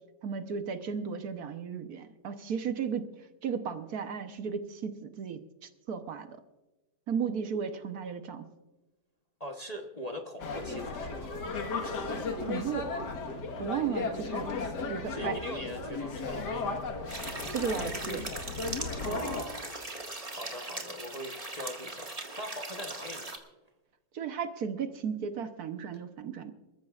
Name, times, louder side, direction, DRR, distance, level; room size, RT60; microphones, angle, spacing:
voice 1, 0.2-3.1 3.4-6.4 7.1-8.5 12.4-12.9 13.6-14.5 14.9-15.4 17.4-18.3 19.0-19.2 24.1-26.5, right 6 dB, 65° right, 8 dB, 1.4 m, -35 dB
voice 2, 9.4-11.3 15.1-16.8 19.0-19.8 20.3-23.3, equal, 30° left, 2 dB, 0.9 m, -41 dB
sound 1, 10.4-19.4, left 3 dB, 80° left, 2.1 m, -35 dB
sound 2, 17.1-23.4, right 2 dB, 20° right, 1.7 m, -40 dB
27.5 x 14.0 x 2.4 m, 1.1 s
omnidirectional pair, 1.8 m